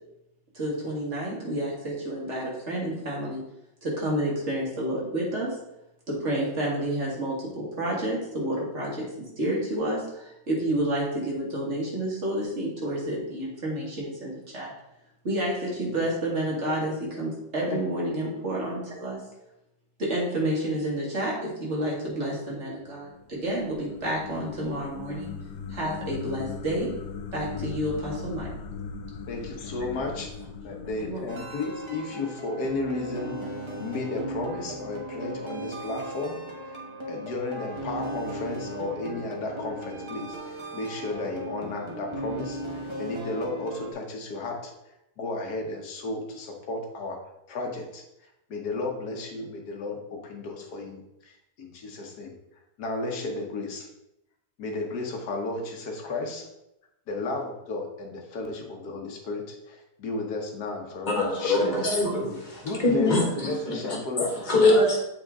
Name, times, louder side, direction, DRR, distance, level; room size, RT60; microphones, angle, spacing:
voice 1, 0.5-3.4 3.8-5.6 6.1-14.7 15.2-19.2 20.0-25.3 25.7-26.9 27.3-28.5 31.0-31.2, right 1 dB, 40° right, -3 dB, 2.1 m, -29 dB
sound 1, 22.9-32.2, left 5 dB, 90° left, 1.4 m, -39 dB
voice 2, 29.3-30.3 30.6-36.8 37.1-44.7 45.2-47.2 47.5-48.0 48.5-52.3 52.8-53.9 54.6-56.5 57.1-61.8 62.6-64.6, left 3 dB, 60° left, 2 dB, 1.6 m, -33 dB
sound 2, 31.3-43.9, right 1 dB, 20° right, 0.9 m, -37 dB
voice 3, 61.1-65.0, left 2 dB, 25° left, -2 dB, 1.5 m, -24 dB
7.8 x 4.4 x 3.6 m, 0.86 s
omnidirectional pair, 2.0 m